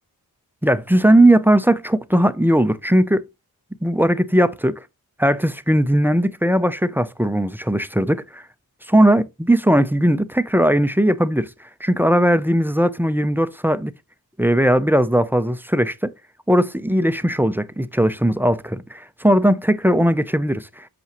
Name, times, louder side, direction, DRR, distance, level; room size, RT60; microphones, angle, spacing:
voice 1, 0.6-3.2 3.8-4.8 5.2-8.4 8.9-11.5 11.8-13.9 14.4-16.1 16.5-20.9, right 1 dB, 5° right, 0.5 m, -18 dB
8.2 x 6.0 x 3.0 m
wide cardioid pair, 80°, 38 cm